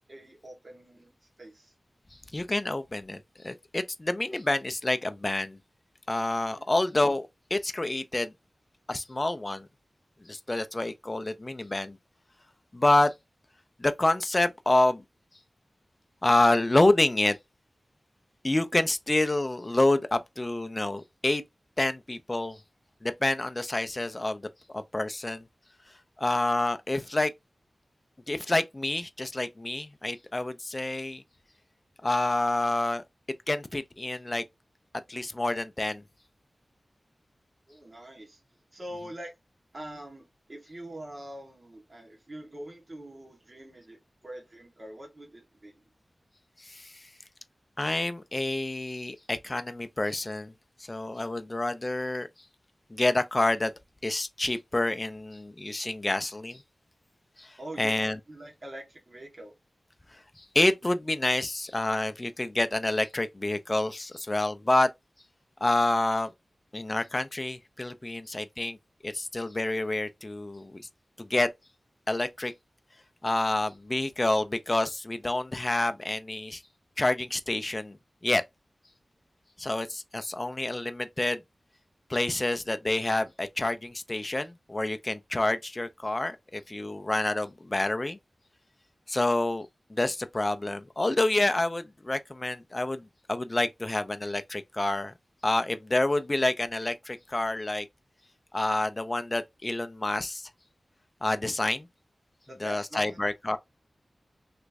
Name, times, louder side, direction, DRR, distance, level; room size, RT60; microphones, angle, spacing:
voice 1, 0.1-1.7 6.5-6.7 37.7-38.4 38.7-39.3 39.7-45.8 57.6-57.9 58.3-59.5 102.5-103.2, right 1 dB, 40° right, 1.1 m, -44 dB
voice 2, 2.3-5.6 6.1-8.3 8.9-9.7 10.3-12.0 12.7-13.1 13.8-15.0 16.2-17.4 18.4-21.4 21.8-22.6 23.0-24.5 24.7-25.4 26.2-27.3 28.3-31.2 32.0-33.0 33.5-34.4 35.1-36.0 46.6-47.1 47.8-50.5 50.9-52.3 52.9-53.7 54.0-56.6 57.4-58.2 60.4-64.9 65.6-66.3 66.7-68.8 69.0-70.9 71.2-71.5 72.1-72.5 73.2-76.6 77.0-78.0 78.2-78.4 79.6-81.4 82.1-88.2 89.1-95.1 95.4-97.9 98.5-100.5 101.2-101.9 102.6-103.6, left 2 dB, 30° left, 0.3 m, -28 dB
3.0 x 2.5 x 3.3 m
wide cardioid pair, 80°, 0 cm